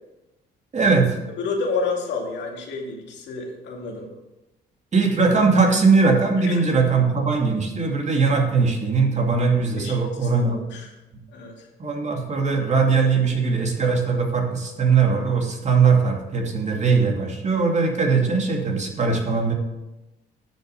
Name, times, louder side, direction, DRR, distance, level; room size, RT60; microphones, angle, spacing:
voice 1, 0.7-1.2 4.9-10.6 11.8-19.5, right 4 dB, 40° right, 2 dB, 2.5 m, -20 dB
voice 2, 1.4-4.1 6.4-6.6 9.7-10.0 10.2-10.9 11.3-11.7, left 4 dB, 75° left, 0 dB, 2.4 m, -30 dB
10.0 x 6.9 x 6.6 m, 1.0 s
cardioid pair, 85°, 19 cm